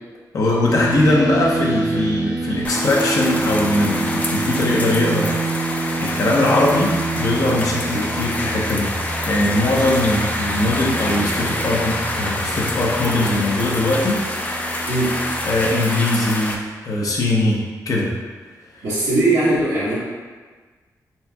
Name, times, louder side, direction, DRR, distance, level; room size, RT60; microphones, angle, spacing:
voice 1, 0.3-8.9 9.2-14.2 15.4-18.1 18.8-18.9, left 2 dB, 65° left, -3 dB, 0.7 m, -21 dB
sound 1, 0.7-15.7, right 3 dB, 65° right, 0.7 m, -27 dB
sound 2, 2.6-16.5, left 1 dB, 25° left, 0.4 m, -27 dB
voice 2, 14.9-15.2 18.8-20.0, right 2 dB, 85° right, -12 dB, 1.1 m, -20 dB
4.2 x 3.5 x 2.2 m, 1.4 s
wide cardioid pair, 115°, 7 cm